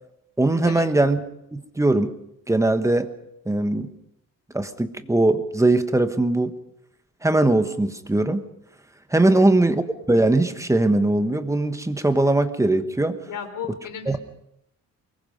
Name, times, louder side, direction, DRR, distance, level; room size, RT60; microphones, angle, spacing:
voice 1, 0.4-1.2 1.5-2.1 2.5-3.1 3.5-3.9 4.5-6.5 7.2-8.4 9.1-9.8 10.1-13.2 14.1-14.2, right 2 dB, 10° right, 9 dB, 1.3 m, -20 dB
voice 2, 13.2-14.2, left 8 dB, 70° left, 6 dB, 4.0 m, -34 dB
23.5 x 21.0 x 5.4 m, 0.79 s
cardioid pair, 125°, 32 cm